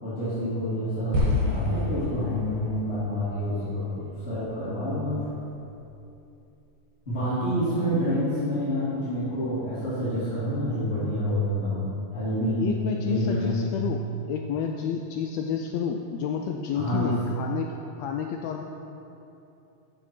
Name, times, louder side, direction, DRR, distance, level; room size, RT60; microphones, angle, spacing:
voice 1, 0.0-5.2 7.1-11.8 12.1-12.7 12.9-13.6 16.7-17.2, equal, 25° left, -13 dB, 2.2 m, -28 dB
sound 1, 1.1-5.5, left 1 dB, 85° right, 3.1 m, -31 dB
voice 2, 12.6-14.0 14.3-18.6, left 7 dB, 80° left, 3 dB, 1.6 m, -30 dB
13.5 x 5.9 x 4.3 m, 2.9 s
omnidirectional pair, 3.4 m